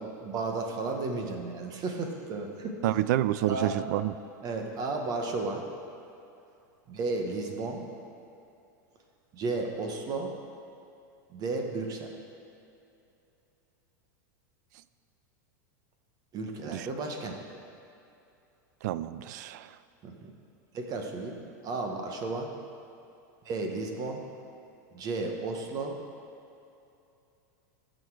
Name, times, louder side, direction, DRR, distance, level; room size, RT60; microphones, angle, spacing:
voice 1, 0.0-3.0 3.5-3.8 4.4-5.7 6.9-7.8 9.3-10.3 11.3-12.1 16.3-17.6 20.0-20.3 20.7-22.5 23.4-24.2 24.9-26.0, right 3 dB, 40° right, 3 dB, 1.3 m, -33 dB
voice 2, 2.8-4.1 16.7-16.9 18.8-19.7, right 14 dB, 70° right, 15 dB, 0.4 m, -28 dB
14.5 x 6.5 x 4.8 m, 2.7 s
hypercardioid pair, 115°, 10 cm